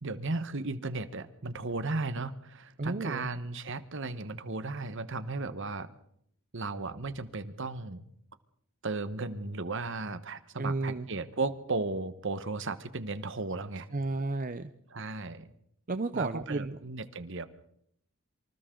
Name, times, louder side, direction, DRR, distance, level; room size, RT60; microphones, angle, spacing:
voice 1, 0.0-5.9 6.5-8.0 8.8-13.9 14.9-15.5 16.1-17.5, right 3 dB, 60° right, 12 dB, 1.3 m, -35 dB
voice 2, 2.8-3.3 10.6-11.1 13.9-14.7 15.9-16.8, right 3 dB, 40° right, 10 dB, 0.7 m, -32 dB
27.0 x 25.0 x 3.9 m, 0.71 s
head